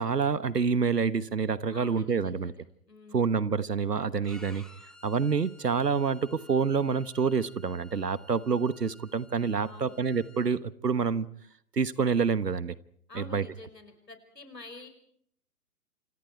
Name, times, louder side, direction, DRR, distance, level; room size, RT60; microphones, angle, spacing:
voice 1, 0.0-2.5 3.1-4.6 5.0-11.3 11.8-12.7 13.1-13.5, right 5 dB, 80° right, 1.3 m, -27 dB
voice 2, 1.7-3.4 9.6-10.0 13.1-14.9, left 2 dB, 85° left, 5.6 m, -48 dB
Bowed string instrument, 4.2-10.5, left 1 dB, ahead, 1.6 m, -55 dB
28.5 x 27.0 x 4.5 m
figure-of-eight pair, 130°, 48 cm